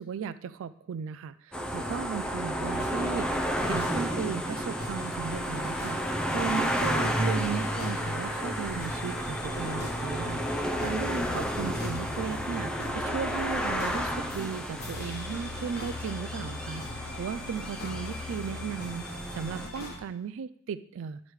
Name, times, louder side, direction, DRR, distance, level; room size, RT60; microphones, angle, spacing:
voice 1, 0.0-3.4 3.7-21.2, right 7 dB, 60° right, 13 dB, 0.3 m, -36 dB
sound 1, 1.5-19.7, equal, 5° left, 0.5 m, -32 dB
sound 2, 2.6-20.0, left 1 dB, 45° left, 1.1 m, -40 dB
sound 3, 5.3-12.0, left 2 dB, 80° left, 0.9 m, -49 dB
12.0 x 4.9 x 3.2 m, 0.70 s
head